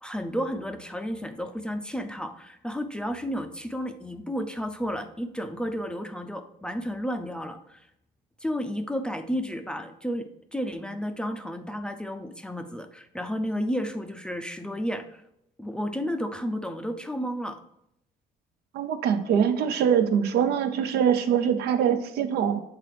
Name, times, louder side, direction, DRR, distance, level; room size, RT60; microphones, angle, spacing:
voice 1, 0.0-7.9 8.4-15.2 15.6-17.6, equal, 5° left, 7 dB, 0.4 m, -32 dB
voice 2, 18.7-22.6, right 8 dB, 70° right, 9 dB, 0.6 m, -23 dB
7.6 x 3.9 x 3.3 m, 0.78 s
cardioid pair, 110°, 17 cm